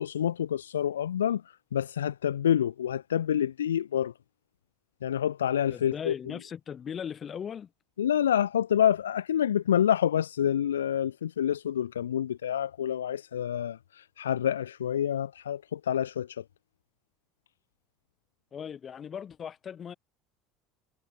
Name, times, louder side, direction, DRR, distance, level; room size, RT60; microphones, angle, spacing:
voice 1, 0.0-1.4 1.7-4.1 5.0-6.1 8.0-16.3, left 9 dB, 80° left, 0.3 m, -27 dB
voice 2, 5.7-7.7 18.5-19.9, left 8 dB, 35° left, 3.8 m, -38 dB
figure-of-eight pair, 65°, 0 cm